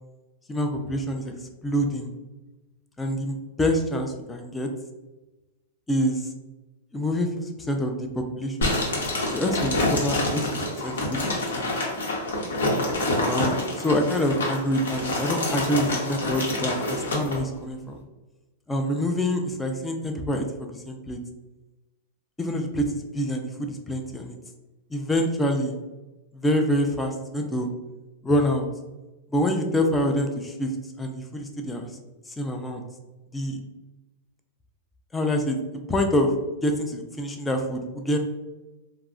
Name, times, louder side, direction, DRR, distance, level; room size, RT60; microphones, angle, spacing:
voice 1, 0.5-1.3 1.6-2.1 3.0-4.7 5.9-6.3 6.9-8.7 9.3-11.7 13.2-18.0 18.7-21.2 22.4-24.4 24.9-25.7 26.3-27.7 28.2-28.7 29.3-30.7 31.0-31.9 32.4-32.8 33.3-33.6 35.1-35.6 35.9-36.3 36.6-38.2, equal, 10° left, 3 dB, 0.4 m, -26 dB
sound 1, 8.6-17.4, left 1 dB, 85° left, 0.8 m, -27 dB
2.3 x 2.0 x 3.6 m, 1.1 s
hypercardioid pair, 125°, 0 cm